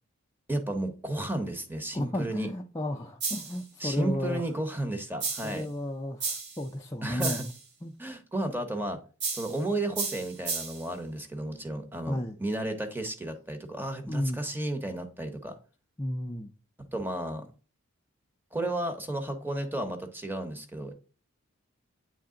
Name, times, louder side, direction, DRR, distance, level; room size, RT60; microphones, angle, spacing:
voice 1, 0.5-2.5 3.8-5.7 7.0-7.4 8.0-9.0 9.3-15.6 16.9-17.4 18.5-20.9, right 1 dB, 10° right, 0.8 m, -33 dB
voice 2, 1.9-4.5 5.4-7.5 7.8-7.9 12.1-12.4 14.1-14.4 16.0-16.5, left 1 dB, 15° left, 0.4 m, -33 dB
sound 1, 3.2-3.6 5.2-5.6 6.2-6.6 7.2-7.6 9.2-9.6 9.9-10.9, right 4 dB, 50° right, 1.4 m, -33 dB
8.5 x 3.3 x 3.7 m
head